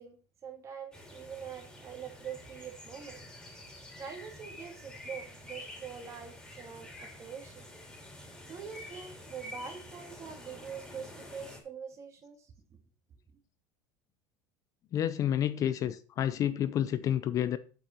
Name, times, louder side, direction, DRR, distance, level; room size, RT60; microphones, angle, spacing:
voice 1, 0.0-3.2 4.0-7.6 8.4-12.8, right 7 dB, 30° right, 2.3 m, -44 dB
sound 1, 0.9-11.6, left 1 dB, 5° left, 3.0 m, -48 dB
voice 2, 14.9-17.6, left 10 dB, 30° left, 0.6 m, -29 dB
8.7 x 8.3 x 4.5 m
cardioid pair, 165°, 11 cm